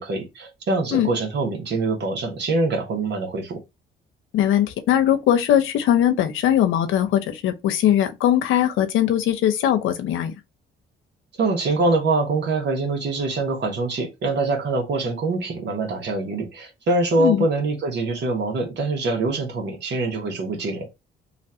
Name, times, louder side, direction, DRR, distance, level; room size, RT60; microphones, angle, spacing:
voice 1, 0.0-3.6 11.4-20.9, right 3 dB, 60° right, 1.4 m, -24 dB
voice 2, 4.3-10.3 17.2-17.4, left 11 dB, 85° left, 0.7 m, -20 dB
3.1 x 2.5 x 4.3 m
cardioid pair, 90°, 20 cm